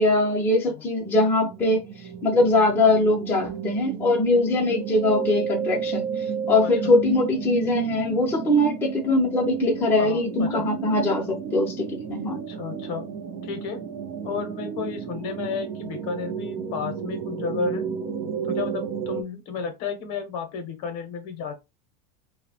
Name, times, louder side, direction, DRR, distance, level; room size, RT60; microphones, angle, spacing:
voice 1, 0.0-1.8 2.2-6.0 6.5-11.8 12.1-12.4, left 2 dB, 10° left, 0.6 m, -21 dB
sound 1, 1.0-19.2, right 7 dB, 40° right, 0.4 m, -32 dB
voice 2, 6.6-6.9 10.0-10.7 12.3-13.1 13.4-13.8 14.2-17.8 18.4-21.6, left 5 dB, 45° left, 0.7 m, -32 dB
2.7 x 2.0 x 2.8 m
supercardioid pair, 150°, 21 cm